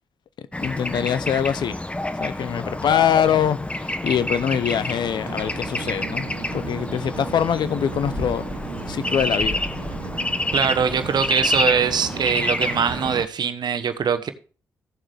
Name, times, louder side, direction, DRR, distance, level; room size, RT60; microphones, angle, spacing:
voice 1, 0.4-1.7 2.2-6.3 6.5-8.4 8.9-9.6, left 9 dB, 70° left, 0.7 m, -23 dB
Bird / Traffic noise roadway noise, 0.5-13.3, left 1 dB, 15° left, 0.9 m, -28 dB
sound 1, 5.3-13.3, right 10 dB, 85° right, 0.6 m, -37 dB
voice 2, 10.5-14.3, right 7 dB, 65° right, 1.1 m, -22 dB
15.5 x 7.4 x 3.4 m
supercardioid pair, 40°, 8 cm